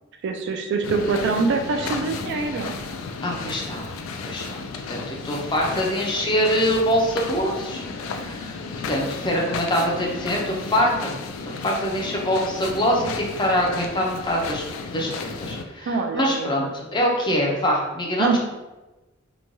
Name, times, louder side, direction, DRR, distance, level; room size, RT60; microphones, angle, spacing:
voice 1, 0.2-2.8 15.9-16.7 18.2-18.4, right 4 dB, 60° right, 5 dB, 0.3 m, -24 dB
sound 1, 0.8-15.6, left 4 dB, 80° left, 0.3 m, -33 dB
voice 2, 3.2-4.0 4.2-4.6 4.9-11.1 11.4-14.6 14.9-18.4, equal, 25° left, -2 dB, 0.5 m, -24 dB
3.0 x 2.2 x 2.6 m, 1.1 s
head